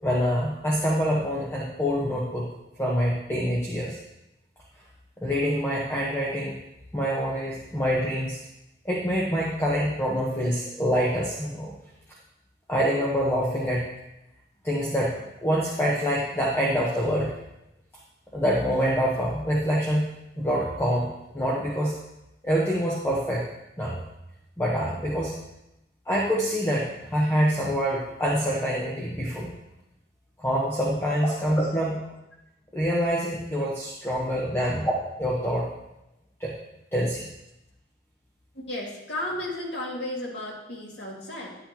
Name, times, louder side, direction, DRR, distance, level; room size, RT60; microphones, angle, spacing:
voice 1, 0.0-2.5 2.8-4.0 5.2-6.5 6.9-8.4 8.8-11.7 12.7-13.9 14.6-15.2 15.4-17.4 18.3-20.1 20.4-21.1 21.3-22.0 22.4-23.5 23.8-24.0 24.6-25.3 26.1-29.5 30.4-32.0 32.7-35.7 36.4-36.5 36.9-37.3, equal, 15° left, -5 dB, 1.0 m, -25 dB
voice 2, 38.5-41.6, left 1 dB, 65° left, -3 dB, 2.2 m, -34 dB
11.0 x 8.3 x 2.9 m, 0.90 s
head